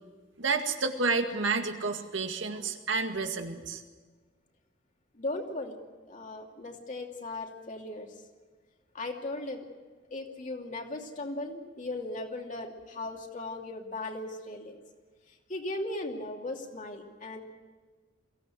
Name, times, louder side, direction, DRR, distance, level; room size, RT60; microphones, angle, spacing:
voice 1, 0.4-3.8, right 4 dB, 80° right, 5 dB, 2.0 m, -30 dB
voice 2, 5.1-5.8 6.1-8.1 8.9-9.6 10.1-14.8 15.3-17.4, left 2 dB, 45° left, 2 dB, 2.7 m, -37 dB
23.0 x 16.5 x 7.9 m, 1.4 s
head